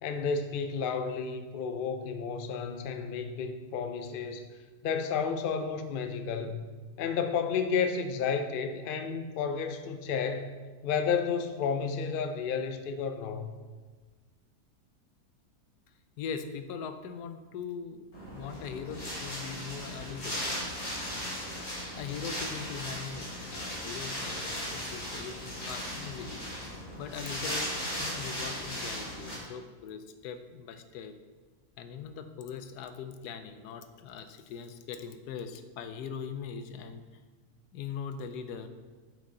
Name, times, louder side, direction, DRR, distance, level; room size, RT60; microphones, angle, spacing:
voice 1, 0.0-4.4 4.8-6.6 7.0-10.5 10.8-13.5, left 6 dB, 65° left, 7 dB, 0.5 m, -31 dB
voice 2, 16.2-18.1 18.3-20.5 21.6-26.5 27.0-31.1 31.8-37.0 37.7-38.7, left 6 dB, 85° left, 9 dB, 1.2 m, -41 dB
Wind, 18.1-29.3, equal, 50° left, 3.1 m, -37 dB
8.8 x 5.4 x 3.7 m, 1.4 s
omnidirectional pair, 1.6 m